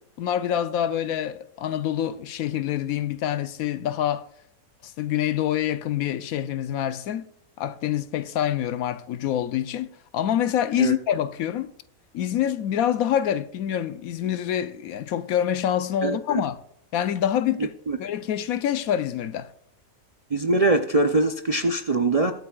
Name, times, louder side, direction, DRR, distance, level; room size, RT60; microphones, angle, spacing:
voice 1, 0.2-4.3 4.8-7.2 7.6-11.7 12.1-16.6 16.9-17.7 18.0-19.5, left 10 dB, 80° left, 1.1 m, -26 dB
voice 2, 16.0-16.4 17.9-18.0 20.3-22.3, right 2 dB, 50° right, 0.4 m, -22 dB
22.5 x 8.3 x 2.4 m
omnidirectional pair, 1.5 m